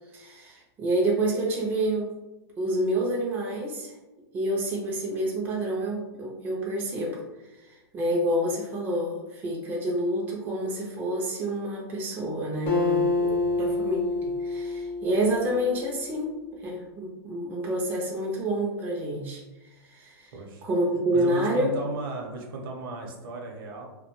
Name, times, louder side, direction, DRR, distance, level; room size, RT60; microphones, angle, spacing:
voice 1, 0.1-2.1 2.6-3.9 4.3-16.3 16.6-19.4 19.8-20.3 20.6-21.7, right 1 dB, 15° right, -3 dB, 0.4 m, -28 dB
Acoustic guitar, 12.7-16.2, left 3 dB, 35° left, 0.6 m, -28 dB
voice 2, 20.3-20.6 21.1-23.9, right 2 dB, 60° right, 1 dB, 0.7 m, -35 dB
2.2 x 2.1 x 2.9 m, 1.1 s
hypercardioid pair, 145°, 13 cm